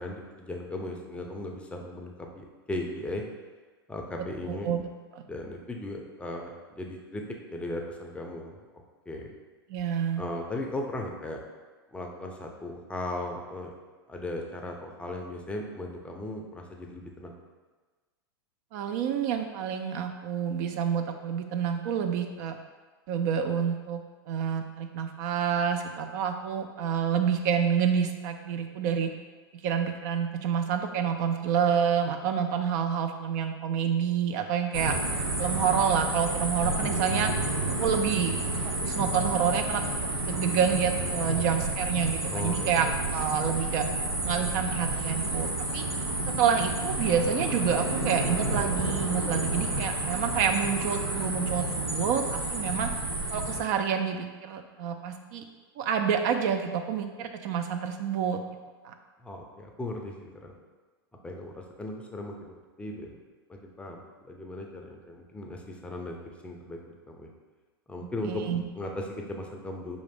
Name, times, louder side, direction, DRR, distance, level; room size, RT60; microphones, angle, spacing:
voice 1, 0.0-3.2 3.9-4.7 5.3-7.2 7.5-8.6 9.1-9.3 10.2-11.4 11.9-13.7 14.1-17.4 42.3-42.9 59.2-60.5 61.2-63.2 63.5-64.0 64.3-67.3 67.9-68.4 68.8-70.0, left 1 dB, 10° left, 1 dB, 0.5 m, -37 dB
voice 2, 4.5-4.8 5.1-5.2 9.7-10.2 18.7-22.6 23.1-24.0 24.3-29.1 29.6-35.0 35.4-37.3 37.8-38.3 38.8-39.8 40.2-43.9 44.2-45.9 46.3-52.9 53.3-55.4 55.8-58.4 58.8-58.9 68.0-68.6, right 7 dB, 50° right, 6 dB, 0.4 m, -28 dB
sound 1, 34.7-53.6, right 2 dB, 90° right, 0.7 m, -30 dB
4.8 x 2.5 x 3.5 m, 1.3 s
hypercardioid pair, 100°, 13 cm